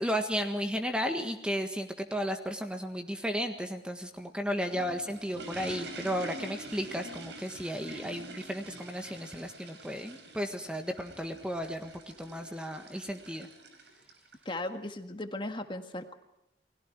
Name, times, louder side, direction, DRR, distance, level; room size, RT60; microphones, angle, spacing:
voice 1, 0.0-13.5, equal, 5° right, 5 dB, 1.5 m, -34 dB
sound 1, 4.3-14.6, right 2 dB, 80° right, 5.5 m, -46 dB
voice 2, 14.4-16.1, left 1 dB, 30° left, 6 dB, 1.8 m, -37 dB
30.0 x 21.0 x 4.6 m, 0.86 s
head